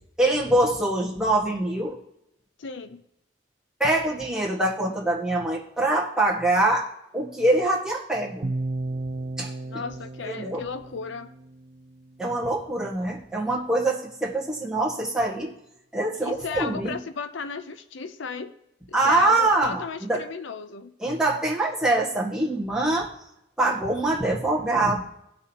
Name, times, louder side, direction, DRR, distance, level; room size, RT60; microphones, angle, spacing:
voice 1, 0.2-2.0 3.8-6.9 7.1-8.5 9.4-9.5 10.3-10.6 12.2-15.5 15.9-17.0 18.9-20.2 21.0-23.1 23.6-25.0, right 2 dB, 5° right, -4 dB, 1.6 m, -24 dB
voice 2, 2.6-3.0 9.6-11.3 16.2-18.5 18.9-20.9, left 5 dB, 70° left, 10 dB, 0.5 m, -35 dB
sound 1, 8.4-12.5, right 2 dB, 35° right, 0.4 m, -34 dB
18.5 x 6.3 x 2.9 m, 0.81 s
head